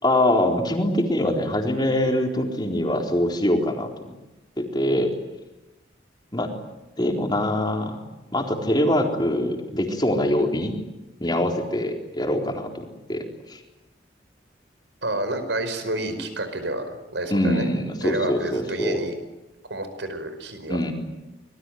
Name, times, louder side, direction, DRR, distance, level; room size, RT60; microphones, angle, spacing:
voice 1, 0.0-3.9 4.6-5.1 6.3-6.5 7.0-8.0 8.3-10.8 11.2-13.6 17.3-19.0 20.7-20.9, left 1 dB, 25° left, 1 dB, 4.0 m, -23 dB
voice 2, 15.0-17.7 18.0-19.1 19.7-20.8, right 2 dB, 75° right, 9 dB, 5.2 m, -29 dB
26.0 x 21.5 x 9.4 m, 1.0 s
head